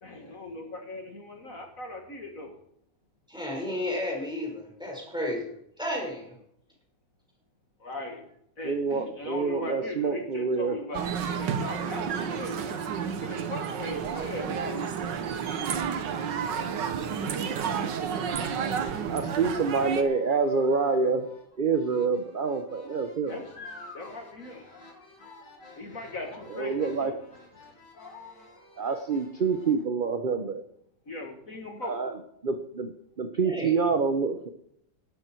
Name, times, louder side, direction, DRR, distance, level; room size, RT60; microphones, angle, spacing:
voice 1, 0.0-2.6 7.8-8.3 8.6-12.7 13.2-14.9 23.3-23.6 23.9-24.7 25.7-27.2 27.6-27.8 31.1-32.1, left 2 dB, 50° left, 2 dB, 2.5 m, -39 dB
voice 2, 3.3-5.5 5.8-6.4 33.4-33.8, left 1 dB, ahead, -2 dB, 5.2 m, -32 dB
voice 3, 8.6-10.8 19.1-21.3 21.6-23.3 26.6-27.1 28.8-30.6 31.8-32.1 32.4-34.5, right 5 dB, 40° right, 8 dB, 0.8 m, -27 dB
sound 1, 10.9-20.0, right 7 dB, 90° right, 1.8 m, -31 dB
sound 2, 19.2-29.8, left 3 dB, 85° left, 3.2 m, -50 dB
17.0 x 12.5 x 4.6 m, 0.72 s
omnidirectional pair, 1.9 m